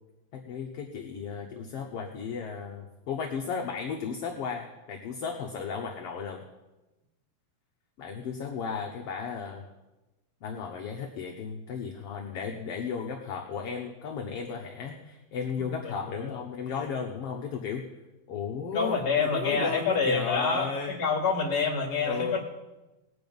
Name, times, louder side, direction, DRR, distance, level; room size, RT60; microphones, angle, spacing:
voice 1, 0.3-6.4 8.0-9.6 10.4-17.9 18.3-20.9 22.0-22.4, left 6 dB, 65° left, 2 dB, 1.8 m, -34 dB
voice 2, 16.0-16.4 18.7-22.4, left 5 dB, 35° left, 0 dB, 2.4 m, -27 dB
19.5 x 7.8 x 5.4 m, 1.1 s
omnidirectional pair, 3.4 m